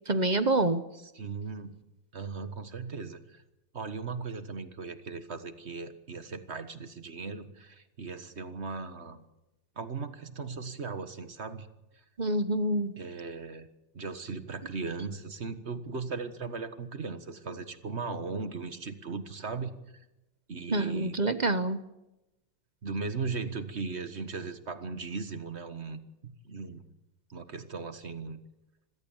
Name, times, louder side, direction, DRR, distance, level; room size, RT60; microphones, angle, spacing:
voice 1, 0.1-0.8 12.2-12.9 20.7-21.8, right 2 dB, 50° right, 11 dB, 0.5 m, -27 dB
voice 2, 1.1-1.7 2.1-3.4 3.7-9.2 9.7-11.7 13.0-13.7 13.9-20.0 20.5-21.2 22.8-26.8 27.3-28.4, right 4 dB, 35° right, 10 dB, 1.6 m, -38 dB
26.0 x 17.0 x 7.2 m, 0.95 s
omnidirectional pair, 2.3 m